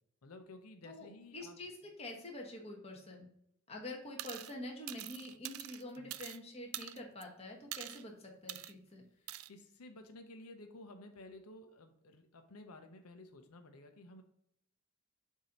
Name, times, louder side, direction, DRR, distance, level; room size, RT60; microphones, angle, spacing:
voice 1, 0.2-1.6 6.0-6.1 9.5-14.2, left 2 dB, 90° left, 7 dB, 0.7 m, -53 dB
voice 2, 0.8-3.3 3.7-9.0, left 1 dB, 30° left, 0 dB, 1.2 m, -47 dB
sound 1, 4.2-4.5 4.9-6.4 6.7-7.2 7.7-8.0 8.5-8.7 9.3-9.5, right 14 dB, 75° right, 0.3 m, -44 dB
7.3 x 2.8 x 5.1 m, 0.75 s
head